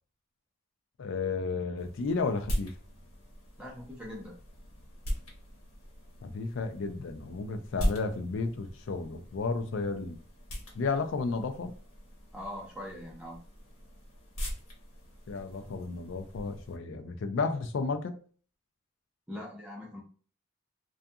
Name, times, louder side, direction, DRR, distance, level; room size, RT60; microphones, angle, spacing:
voice 1, 1.0-2.7 6.2-10.2 10.7-11.7 15.3-18.1, left 4 dB, 60° left, 0.4 m, -32 dB
sound 1, 1.8-16.8, equal, 85° left, 1.0 m, -40 dB
voice 2, 3.6-4.3 12.3-13.4 19.3-20.0, left 1 dB, 5° right, 0.5 m, -41 dB
2.5 x 2.3 x 2.6 m
head